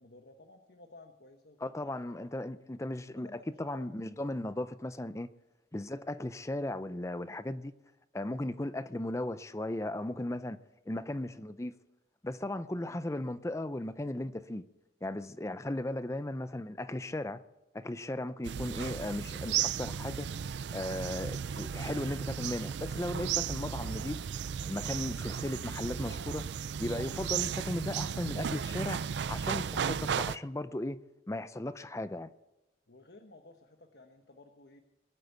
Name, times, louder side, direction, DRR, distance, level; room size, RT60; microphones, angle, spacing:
voice 1, 0.0-1.8 2.2-2.3 3.1-3.8 32.9-34.8, left 2 dB, 65° left, 1.2 m, -55 dB
voice 2, 1.6-5.3 5.7-7.7 8.1-10.6 10.9-11.8 12.2-14.6 15.0-17.4 17.7-20.3 20.7-24.2 24.7-26.5 26.8-29.0 29.3-31.0 31.3-32.3, left 1 dB, 15° left, 0.5 m, -36 dB
sound 1, 18.4-30.4, right 7 dB, 80° right, 0.4 m, -35 dB
21.0 x 8.1 x 8.1 m
head